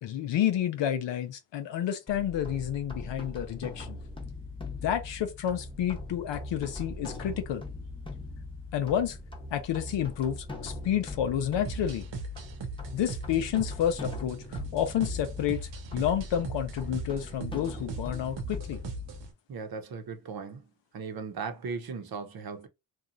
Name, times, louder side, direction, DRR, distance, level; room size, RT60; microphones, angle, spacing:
voice 1, 0.0-4.0 4.8-7.7 8.7-9.2 9.5-12.1 12.9-18.8, left 10 dB, 80° left, 0.6 m, -30 dB
sound 1, 2.1-19.3, left 2 dB, 10° left, 0.8 m, -41 dB
sound 2, 11.6-19.3, right 3 dB, 90° right, 0.7 m, -40 dB
voice 2, 19.5-22.7, right 5 dB, 55° right, 0.8 m, -38 dB
2.9 x 2.3 x 2.4 m
cardioid pair, 50°, 43 cm